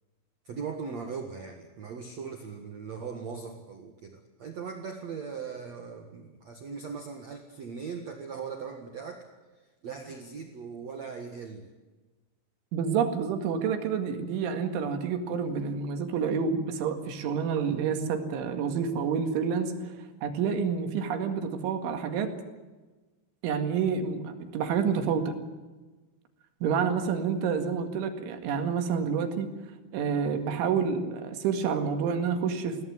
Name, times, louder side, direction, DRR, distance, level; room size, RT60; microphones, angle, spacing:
voice 1, 0.4-9.3 9.8-11.7, right 5 dB, 50° right, 4 dB, 2.2 m, -39 dB
voice 2, 12.7-19.9 20.2-22.3 23.4-25.3 26.6-29.5 29.9-32.8, right 6 dB, 90° right, 7 dB, 4.5 m, -28 dB
22.0 x 17.0 x 9.5 m, 1.2 s
omnidirectional pair, 5.3 m